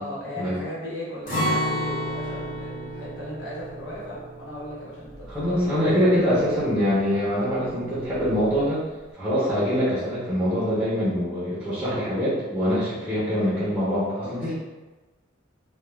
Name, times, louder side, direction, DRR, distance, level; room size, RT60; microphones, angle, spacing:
voice 1, 0.0-5.7 14.2-14.5, left 1 dB, 65° left, -7 dB, 1.0 m, -37 dB
Acoustic guitar, 1.3-7.2 7.5-7.7 8.1-8.6, equal, 45° left, 1.1 m, -32 dB
voice 2, 5.3-8.8 9.1-14.5, equal, 10° right, -10 dB, 0.6 m, -24 dB
2.3 x 2.2 x 3.0 m, 1.2 s
head